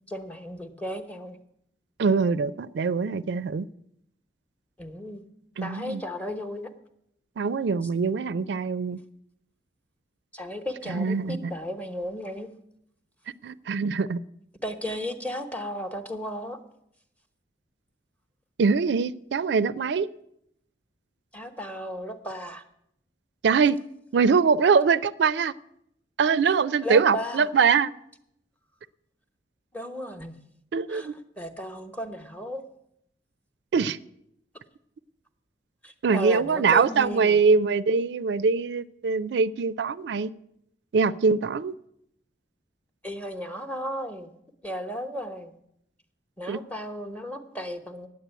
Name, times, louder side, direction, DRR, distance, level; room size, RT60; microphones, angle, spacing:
voice 1, 0.1-1.4 4.8-5.2 5.6-6.7 10.3-12.5 14.6-16.6 21.3-22.6 26.8-27.5 29.7-30.3 30.9-32.7 35.8-37.4 43.0-44.3 44.6-45.5 46.4-48.1, equal, 10° left, 0.9 m, -35 dB
voice 2, 2.0-3.7 5.6-6.0 7.4-9.0 10.9-11.5 13.4-14.2 18.6-20.1 23.4-23.8 24.1-25.5 26.2-27.9 30.7-31.1 33.7-34.0 36.0-40.3 40.9-41.7 46.5-46.6, right 5 dB, 70° right, 0.4 m, -23 dB
9.6 x 8.2 x 9.0 m
head